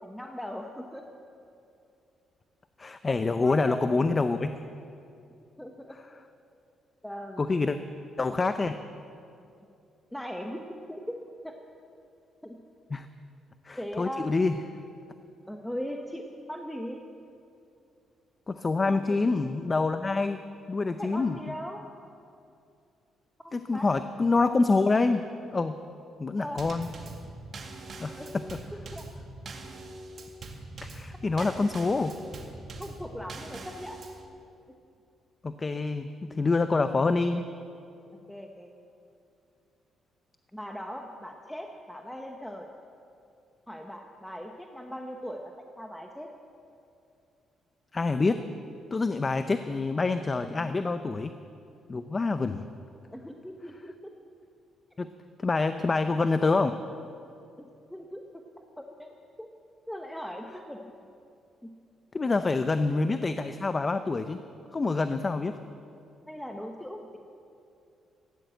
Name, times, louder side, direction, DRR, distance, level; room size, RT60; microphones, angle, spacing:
voice 1, 0.0-1.0 3.2-4.3 5.6-6.0 7.0-7.5 10.1-11.1 11.4-11.5 12.4-12.6 13.8-14.4 15.5-16.2 16.5-17.0 18.9-19.2 21.0-21.8 23.7-23.9 26.4-26.6 28.2-28.3 28.9-29.0 31.4-31.5 32.8-34.0 38.3-38.7 40.5-42.7 43.7-46.3 50.5-50.7 51.1-51.2 53.1-53.9 57.6-58.2 58.6-59.1 59.4-59.5 59.9-60.8 61.6-61.7 66.3-67.2, equal, 5° left, 2 dB, 1.1 m, -39 dB
voice 2, 2.8-4.5 7.4-7.8 8.2-8.8 12.9-13.1 13.6-14.5 18.5-20.4 20.7-21.4 23.5-25.2 25.5-25.8 26.2-26.9 28.0-28.4 30.8-32.1 35.4-36.1 36.3-37.5 47.9-48.4 48.9-51.3 51.9-52.6 55.0-55.1 55.4-56.8 62.1-64.4 64.7-65.6, left 3 dB, 30° left, 10 dB, 0.6 m, -26 dB
Drum kit / Snare drum / Bass drum, 26.6-34.3, right 2 dB, 50° right, 2.0 m, -43 dB
15.0 x 10.5 x 7.8 m, 2.6 s
cardioid pair, 90°, 0 cm